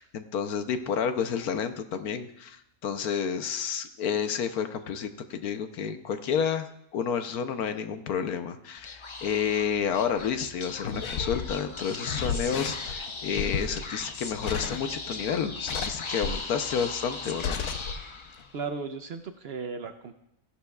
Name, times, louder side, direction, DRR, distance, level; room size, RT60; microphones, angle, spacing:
voice 1, 0.0-17.7, left 7 dB, 90° left, 9 dB, 1.3 m, -30 dB
Speech / Whispering, 8.8-18.6, left 3 dB, 45° left, 0.4 m, -38 dB
sound 1, 10.8-15.2 15.6-16.5 16.9-17.0 17.4-18.0 18.3-18.4, left 6 dB, 70° left, 1.1 m, -33 dB
voice 2, 18.5-20.1, right 5 dB, 55° right, 7 dB, 0.7 m, -35 dB
16.5 x 11.0 x 2.4 m, 0.80 s
omnidirectional pair, 1.5 m